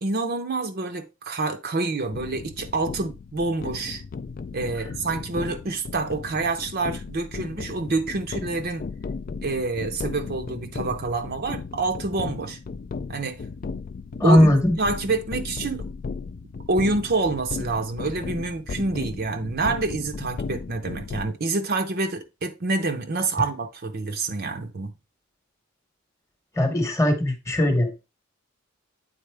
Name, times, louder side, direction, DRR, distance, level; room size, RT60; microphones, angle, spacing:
voice 1, 0.0-4.0 4.5-8.8 9.4-12.6 13.1-13.4 14.2-15.9 16.7-24.9, right 3 dB, 45° right, 0.6 m, -27 dB
sound 1, 2.1-21.3, left 4 dB, 40° left, 0.3 m, -35 dB
voice 2, 14.2-14.8 26.5-27.9, left 1 dB, 15° left, 1.0 m, -19 dB
8.8 x 4.0 x 3.3 m
head